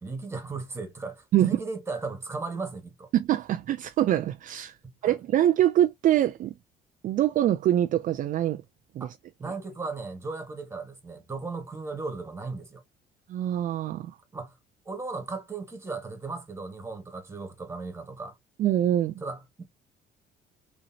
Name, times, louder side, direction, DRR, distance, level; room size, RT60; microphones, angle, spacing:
voice 1, 0.0-3.1 4.8-5.2 9.0-9.1 9.4-12.8 14.3-14.6 14.8-18.4 19.2-19.6, right 3 dB, 15° right, 1.6 m, -36 dB
voice 2, 3.1-4.8 5.0-6.5 7.0-8.6 9.0-9.1 13.3-14.1 18.6-19.1, right 12 dB, 50° right, 0.4 m, -24 dB
3.9 x 3.1 x 2.7 m
cardioid pair, 110°, 17 cm